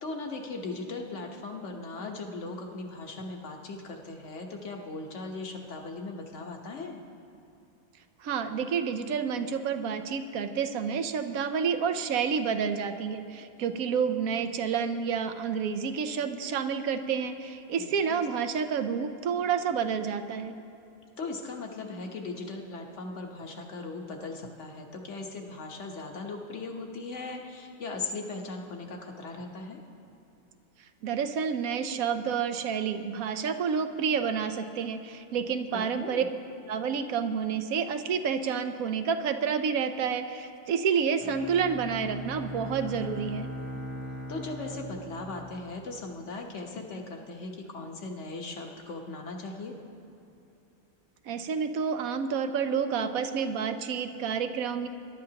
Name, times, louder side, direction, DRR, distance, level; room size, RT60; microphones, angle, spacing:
voice 1, 0.0-7.0 17.8-18.2 21.2-29.8 35.9-36.3 44.3-49.8, left 3 dB, 55° left, 2 dB, 1.4 m, -38 dB
voice 2, 8.2-20.6 31.0-36.2 36.7-43.5 51.2-54.9, right 6 dB, 75° right, 9 dB, 1.1 m, -29 dB
Bowed string instrument, 41.2-46.2, equal, 55° right, 1.6 m, -40 dB
21.5 x 11.5 x 2.9 m, 2.8 s
omnidirectional pair, 1.5 m